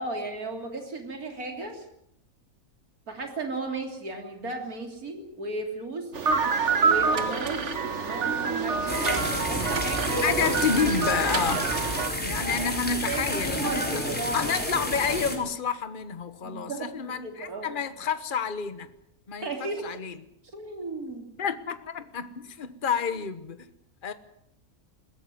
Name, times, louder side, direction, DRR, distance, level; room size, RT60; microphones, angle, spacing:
voice 1, 0.0-1.8 3.1-6.1 6.8-7.7 7.9-10.4 12.3-12.5 13.1-14.3 16.4-16.9 17.2-17.7 19.4-19.9 20.5-21.3, right 2 dB, 80° right, 3.7 m, -35 dB
sound 1, 6.1-12.1, right 5 dB, 50° right, 1.8 m, -27 dB
sound 2, 8.9-15.4, equal, 5° left, 3.9 m, -30 dB
voice 2, 10.2-11.7 12.2-14.0 14.3-18.9 19.3-20.2 21.4-23.7 24.0-24.1, left 6 dB, 35° left, 1.3 m, -29 dB
21.0 x 17.0 x 9.5 m
omnidirectional pair, 1.5 m